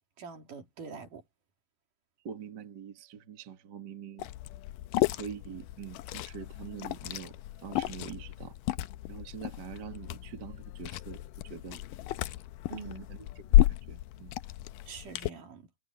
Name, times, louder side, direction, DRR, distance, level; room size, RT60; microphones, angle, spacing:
voice 1, 0.2-1.2 12.7-13.1 14.9-15.7, right 5 dB, 70° right, 4.6 m, -44 dB
voice 2, 2.2-4.3 5.1-7.3 7.6-8.6 9.1-11.8 12.8-14.3, right 8 dB, 40° right, 1.8 m, -44 dB
Liquid, 4.2-15.3, left 15 dB, 90° left, 2.3 m, -32 dB
omnidirectional pair, 3.8 m